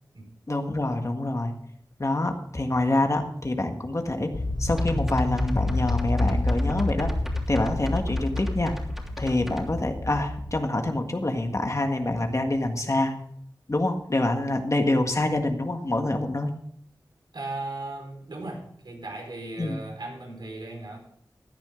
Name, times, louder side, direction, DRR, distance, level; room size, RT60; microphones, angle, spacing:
voice 1, 0.5-1.5 2.0-4.3 4.6-7.1 7.5-8.8 9.2-13.1 13.7-16.5 19.6-19.8, left 2 dB, 40° left, 5 dB, 1.8 m, -26 dB
sound 1, 4.3-10.6, left 2 dB, 75° left, 1.8 m, -28 dB
sound 2, 4.8-9.7, equal, 5° right, 3.2 m, -42 dB
voice 2, 17.3-21.0, right 2 dB, 75° right, 0 dB, 4.9 m, -37 dB
16.0 x 10.5 x 3.9 m, 0.70 s
wide cardioid pair, 60°, 8 cm